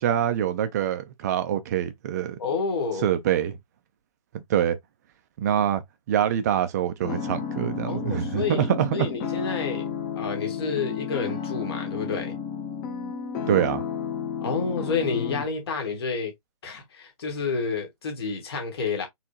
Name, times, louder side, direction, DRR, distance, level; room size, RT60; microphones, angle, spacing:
voice 1, 0.0-2.4 3.0-3.6 4.3-4.8 5.4-5.8 6.1-9.1 13.5-13.8, right 10 dB, 25° right, 0.7 m, -25 dB
voice 2, 2.4-3.1 7.9-9.9 10.2-12.4 14.4-16.3 16.6-19.1, left 5 dB, 40° left, 2.2 m, -29 dB
sound 1, 7.0-15.4, left 7 dB, 20° left, 1.4 m, -32 dB
4.5 x 3.4 x 3.0 m
figure-of-eight pair, 135°, 19 cm